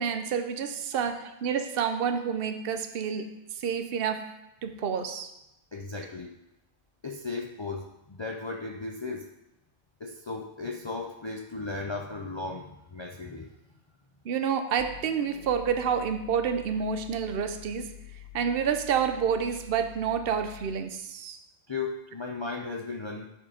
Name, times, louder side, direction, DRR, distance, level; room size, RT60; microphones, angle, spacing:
voice 1, 0.0-4.3 4.6-5.3 14.2-17.9 18.3-21.4, right 7 dB, 60° right, 8 dB, 0.9 m, -29 dB
voice 2, 5.7-6.4 7.0-9.3 10.0-13.5 21.7-23.3, left 3 dB, 35° left, 1 dB, 0.5 m, -36 dB
sound 1, 14.8-21.0, left 12 dB, 50° left, 1.0 m, -47 dB
10.5 x 4.5 x 5.1 m, 0.90 s
omnidirectional pair, 1.1 m